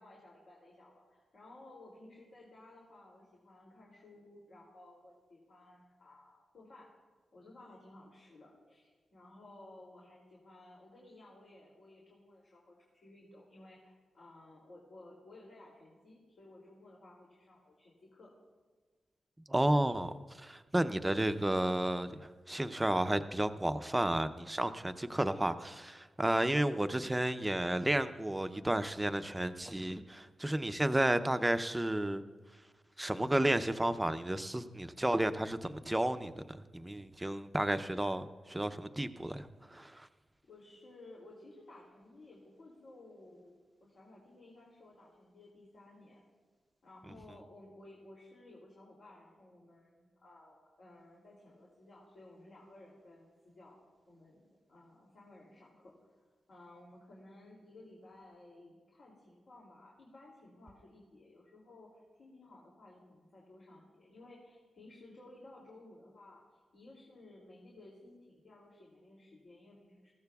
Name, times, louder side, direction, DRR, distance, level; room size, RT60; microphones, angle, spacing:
voice 1, 0.0-6.9 7.3-18.3 40.5-43.5 43.8-46.2 46.8-53.8 54.1-56.1 56.5-66.4 66.7-70.1, left 2 dB, 65° left, -4 dB, 2.8 m, -56 dB
voice 2, 19.5-32.2 33.0-40.1, right 1 dB, 15° right, 10 dB, 0.6 m, -32 dB
20.5 x 15.0 x 2.4 m, 1.4 s
cardioid pair, 85°, 0 cm